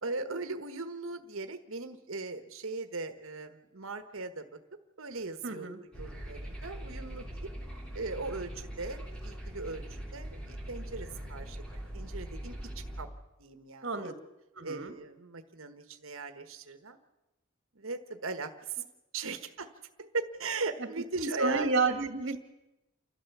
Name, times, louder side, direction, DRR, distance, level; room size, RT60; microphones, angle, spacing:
voice 1, 0.0-4.5 5.0-5.7 6.0-7.5 7.9-12.7 13.0-13.1 13.4-14.1 14.6-17.0 17.7-18.9 19.1-19.7 20.0-21.7, right 3 dB, 75° right, 8 dB, 1.3 m, -38 dB
voice 2, 5.4-5.8 13.8-14.1 14.6-15.0 21.2-22.4, right 3 dB, 55° right, 8 dB, 1.9 m, -30 dB
sound 1, 5.9-13.0, right 1 dB, 5° left, 2.8 m, -41 dB
29.5 x 12.5 x 7.1 m, 1.0 s
head